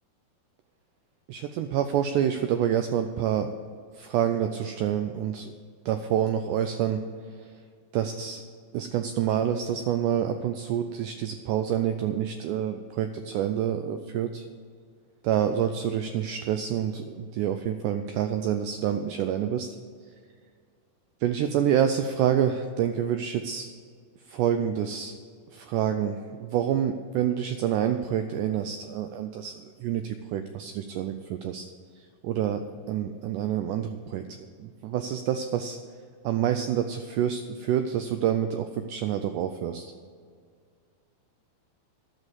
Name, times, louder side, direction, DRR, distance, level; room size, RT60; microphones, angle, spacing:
voice 1, 1.3-3.5 4.0-5.5 5.9-7.0 7.9-8.4 8.7-14.4 15.2-19.7 21.2-23.7 24.3-25.1 25.5-29.5 29.8-31.7 32.2-32.6 32.9-34.2 34.6-35.8 36.2-39.9, right 9 dB, 90° right, 8 dB, 1.8 m, -27 dB
11.5 x 6.3 x 7.3 m, 2.1 s
omnidirectional pair, 4.2 m